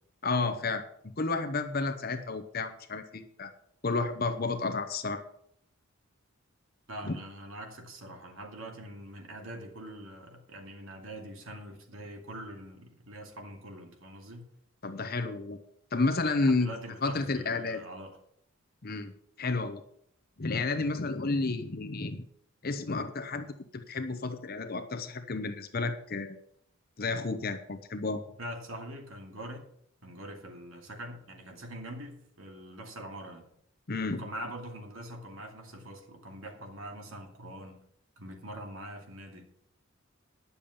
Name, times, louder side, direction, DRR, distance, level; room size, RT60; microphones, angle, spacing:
voice 1, 0.2-0.8 1.2-3.5 3.8-5.2 7.0-7.2 14.8-15.6 15.9-16.7 17.0-17.8 18.8-19.1 19.4-19.8 20.4-22.3 22.6-26.4 27.0-28.2 33.9-34.2, left 3 dB, 45° left, 8 dB, 0.8 m, -31 dB
voice 2, 6.9-14.5 16.2-18.2 28.4-29.7 30.0-33.5 34.1-37.8 38.2-39.5, right 1 dB, 70° right, 2 dB, 2.5 m, -43 dB
10.5 x 7.0 x 7.1 m, 0.70 s
head